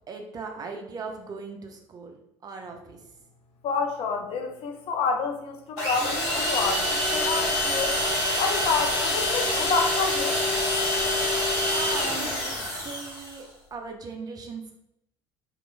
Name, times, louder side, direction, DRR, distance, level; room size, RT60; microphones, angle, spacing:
voice 1, 0.1-3.0 11.7-14.7, right 4 dB, 25° right, 3 dB, 0.4 m, -39 dB
voice 2, 3.6-8.0 8.4-10.5, left 4 dB, 40° left, 4 dB, 0.4 m, -29 dB
sound 1, 5.8-13.4, left 1 dB, 60° left, 1.0 m, -26 dB
2.9 x 2.1 x 2.4 m, 0.80 s
figure-of-eight pair, 60°, 14 cm